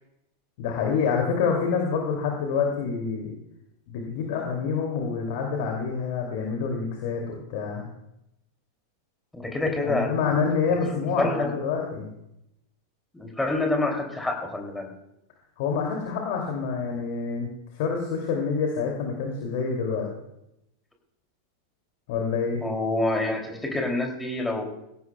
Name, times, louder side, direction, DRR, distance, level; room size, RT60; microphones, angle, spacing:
voice 1, 0.6-3.3 3.9-7.9 9.8-12.1 15.6-17.5 17.7-20.1 22.1-22.6, left 5 dB, 50° left, 1 dB, 2.5 m, -27 dB
voice 2, 9.3-10.4 10.7-11.5 13.1-14.9 22.6-24.7, left 2 dB, 5° left, 2 dB, 2.7 m, -27 dB
19.5 x 17.0 x 2.3 m, 0.84 s
figure-of-eight pair, 90°, 0 cm